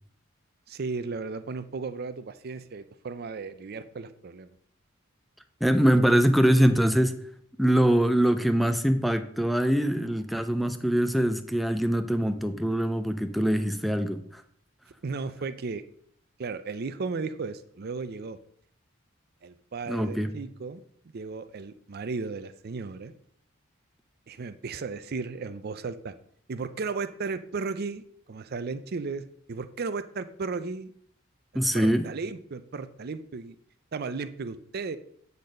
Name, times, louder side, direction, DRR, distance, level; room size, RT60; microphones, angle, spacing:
voice 1, 0.7-4.5 15.0-15.8 16.4-18.4 19.4-20.8 21.1-23.1 24.3-26.1 26.5-28.0 28.3-30.9 31.7-33.6 33.9-35.0, right 4 dB, 50° right, 11 dB, 0.5 m, -35 dB
voice 2, 5.6-7.2 7.6-14.4 19.9-20.3 31.5-32.1, equal, ahead, 9 dB, 0.5 m, -23 dB
8.7 x 4.1 x 6.3 m, 0.63 s
head